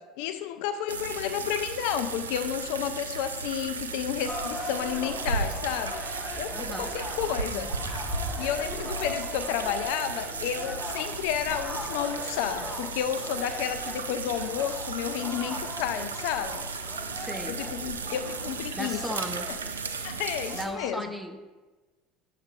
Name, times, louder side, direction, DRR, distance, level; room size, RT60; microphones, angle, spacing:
voice 1, 0.0-6.0 6.4-7.7 8.4-16.7 17.5-19.0 20.0-21.1, left 10 dB, 65° left, 10 dB, 0.3 m, -31 dB
sound 1, 0.9-20.7, right 5 dB, 90° right, 0.3 m, -35 dB
sound 2, 4.3-20.9, left 2 dB, 15° left, 0.9 m, -40 dB
voice 2, 6.5-6.9 17.1-17.6 18.7-19.5 20.5-21.6, right 1 dB, 5° right, 6 dB, 0.6 m, -36 dB
7.8 x 5.7 x 2.3 m, 1.2 s
hypercardioid pair, 70°, 0 cm